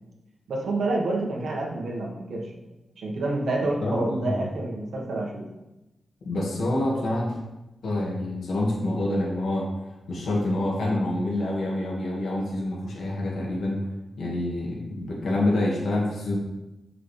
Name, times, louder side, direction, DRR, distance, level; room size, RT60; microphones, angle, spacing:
voice 1, 0.5-2.5 3.0-5.4, right 2 dB, 75° right, -1 dB, 1.4 m, -28 dB
voice 2, 3.8-4.4 6.3-7.4 7.8-9.7 10.1-13.9 14.2-16.4, left 1 dB, 75° left, -2 dB, 1.7 m, -27 dB
7.4 x 5.9 x 3.3 m, 0.99 s
wide cardioid pair, 175°, 0 cm